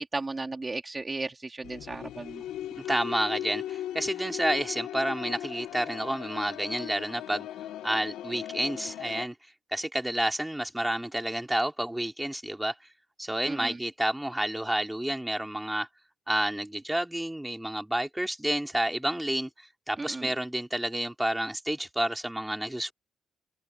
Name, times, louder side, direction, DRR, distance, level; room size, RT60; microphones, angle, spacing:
voice 1, 0.1-2.4 13.5-13.8 20.0-20.3, right 3 dB, 25° right, 2.8 m, -35 dB
sound 1, 1.6-9.3, left 12 dB, 85° left, 1.9 m, -38 dB
voice 2, 2.9-7.5 7.8-9.3 9.7-12.7 13.2-15.9 16.3-19.5 19.9-22.9, right 1 dB, 5° right, 4.0 m, -30 dB
open air
cardioid pair, 90°, 0 cm